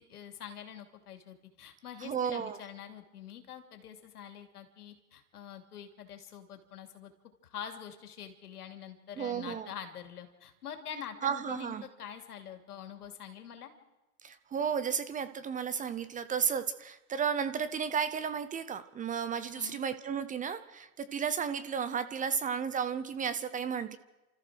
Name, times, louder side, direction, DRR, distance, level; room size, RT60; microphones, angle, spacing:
voice 1, 0.0-7.1 7.4-13.7 19.6-19.8, left 8 dB, 85° left, 6 dB, 3.0 m, -45 dB
voice 2, 2.0-2.6 9.2-9.7 11.2-11.8 14.2-24.0, right 7 dB, 15° right, 13 dB, 0.8 m, -33 dB
29.5 x 14.0 x 6.4 m, 1.1 s
hypercardioid pair, 120°, 45 cm